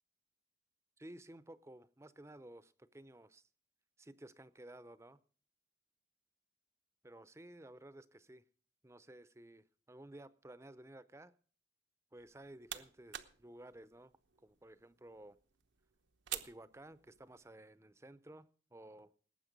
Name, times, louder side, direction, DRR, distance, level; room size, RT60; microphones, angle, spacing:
voice 1, 1.0-3.4 4.0-5.2 7.0-8.4 8.8-11.3 12.1-14.1 14.4-15.4 16.3-19.1, right 1 dB, 15° right, 0.6 m, -55 dB
sound 1, 12.2-17.5, right 11 dB, 90° right, 1.0 m, -50 dB
19.0 x 8.7 x 5.2 m
head